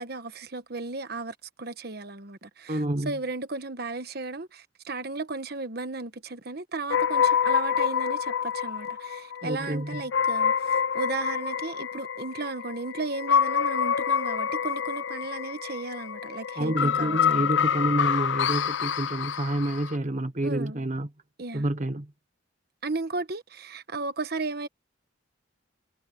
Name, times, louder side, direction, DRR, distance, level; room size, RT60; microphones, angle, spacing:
voice 1, 0.0-17.5 20.4-20.8 21.4-21.7 22.8-24.7, right 3 dB, 55° right, 1.2 m, -35 dB
voice 2, 2.7-3.1 9.4-10.0 16.6-21.1 21.5-22.1, right 1 dB, 40° right, 1.1 m, -28 dB
sound 1, 6.9-20.0, left 7 dB, 70° left, 0.5 m, -27 dB
head